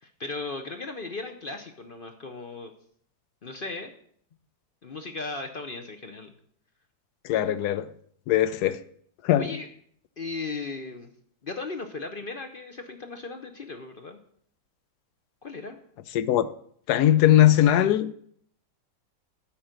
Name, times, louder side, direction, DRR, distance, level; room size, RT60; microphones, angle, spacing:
voice 1, 0.0-2.7 3.4-3.9 4.8-6.3 9.4-9.7 10.2-11.1 11.4-14.2 15.4-15.8, left 3 dB, 50° left, 0.6 m, -36 dB
voice 2, 7.2-7.9 8.3-8.8 9.2-9.5 16.1-16.5 16.9-18.1, left 12 dB, 75° left, 1.1 m, -20 dB
8.8 x 5.4 x 7.7 m
omnidirectional pair, 1.8 m